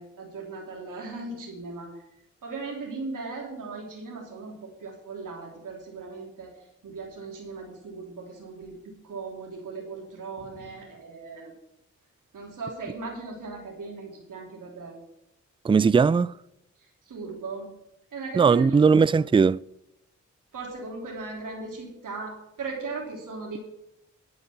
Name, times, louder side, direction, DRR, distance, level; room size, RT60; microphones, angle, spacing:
voice 1, 0.0-1.9 2.4-6.5 6.8-11.5 12.3-15.0 16.8-17.7 18.1-19.2 20.5-23.6, right 4 dB, 85° right, 3.3 m, -38 dB
voice 2, 15.6-16.3 18.4-19.6, right 5 dB, 15° right, 0.3 m, -19 dB
11.5 x 5.4 x 8.3 m
cardioid pair, 45°, 31 cm